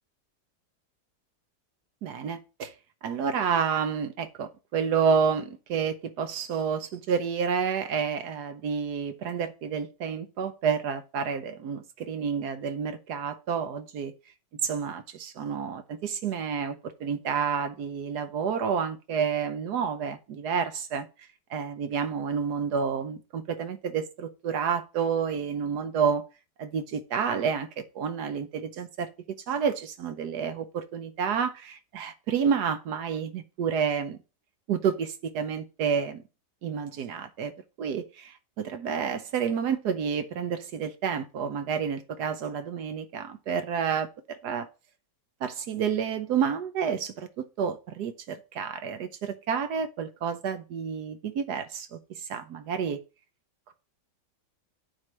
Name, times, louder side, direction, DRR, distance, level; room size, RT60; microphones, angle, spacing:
voice 1, 2.0-2.7 3.0-14.1 14.6-21.1 21.5-26.2 26.6-29.1 29.5-34.2 34.7-36.2 36.6-37.5 37.8-44.1 44.4-44.7 45.4-53.0, right 6 dB, 65° right, 1.3 m, -29 dB
8.6 x 3.3 x 6.0 m
omnidirectional pair, 1.9 m